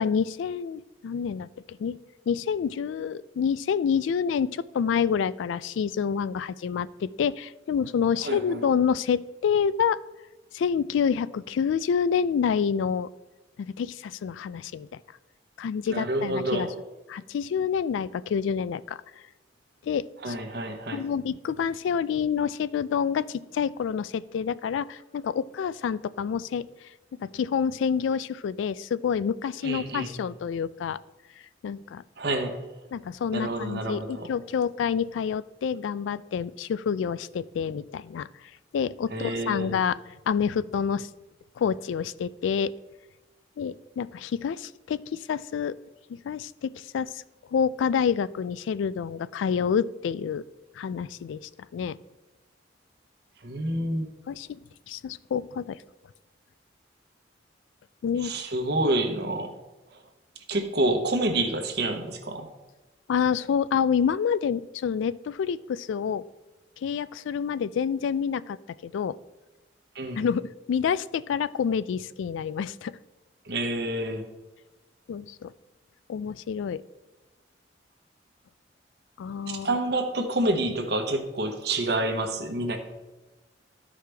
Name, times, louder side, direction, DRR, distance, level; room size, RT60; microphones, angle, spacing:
voice 1, 0.0-2.0 2.3-10.0 10.5-13.1 13.6-14.9 15.6-16.7 17.1-19.0 19.8-20.3 20.9-26.7 27.2-31.0 31.6-32.0 32.9-38.3 38.7-40.0 40.3-41.1 41.6-42.7 43.6-45.8 46.1-47.2 47.5-50.4 50.8-52.0 54.3-54.6 54.9-55.8 58.0-58.3 63.1-66.2 66.8-68.6 68.8-69.2 70.2-72.9 75.1-75.5 76.1-76.8 79.2-79.8, left 7 dB, 80° left, 17 dB, 0.3 m, -28 dB
voice 2, 8.2-8.7 15.9-16.7 20.2-21.0 29.6-30.1 32.2-32.6 33.3-34.3 39.1-39.7 53.4-54.1 58.2-59.5 59.9-60.0 60.5-62.5 69.9-70.2 73.4-74.3 79.5-82.8, right 1 dB, 60° right, 5 dB, 1.0 m, -28 dB
13.0 x 4.9 x 3.4 m, 1.1 s
head